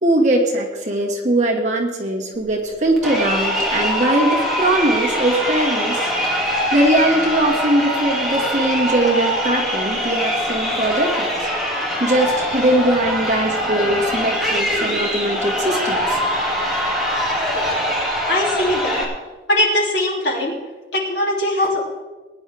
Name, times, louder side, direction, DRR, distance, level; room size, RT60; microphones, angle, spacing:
voice 1, 0.0-6.1 6.5-11.5 11.8-16.2, right 1 dB, 40° right, -2 dB, 2.2 m, -20 dB
Crowd, 3.0-19.0, equal, ahead, 2.6 m, -22 dB
voice 2, 18.3-19.0 19.5-20.6 20.9-21.9, left 1 dB, 75° left, -2 dB, 3.2 m, -20 dB
19.0 x 10.5 x 3.6 m, 1.2 s
head